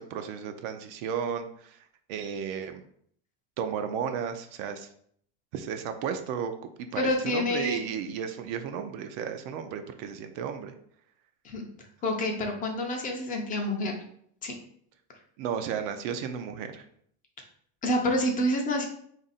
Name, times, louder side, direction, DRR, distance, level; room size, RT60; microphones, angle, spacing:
voice 1, 0.0-2.8 3.6-4.9 5.5-10.7 15.4-16.8, right 7 dB, 55° right, 7 dB, 0.5 m, -34 dB
voice 2, 7.0-7.8 11.4-11.7 12.0-13.9 14.4-14.5 17.8-18.9, left 1 dB, 25° left, 2 dB, 0.5 m, -28 dB
3.5 x 2.6 x 4.0 m, 0.65 s
cardioid pair, 160°, 34 cm